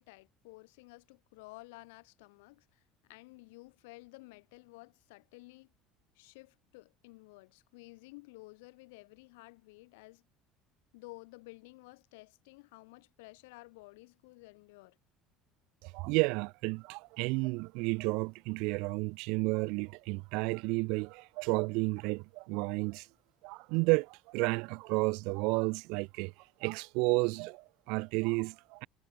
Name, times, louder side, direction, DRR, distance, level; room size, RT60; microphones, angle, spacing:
voice 1, 0.0-5.7 6.2-10.2 10.9-15.0, left 24 dB, 90° left, 5.7 m, -53 dB
voice 2, 15.8-23.1 23.4-26.3 26.6-28.9, right 28 dB, 75° right, 0.4 m, -32 dB
supercardioid pair, 120°, 0 cm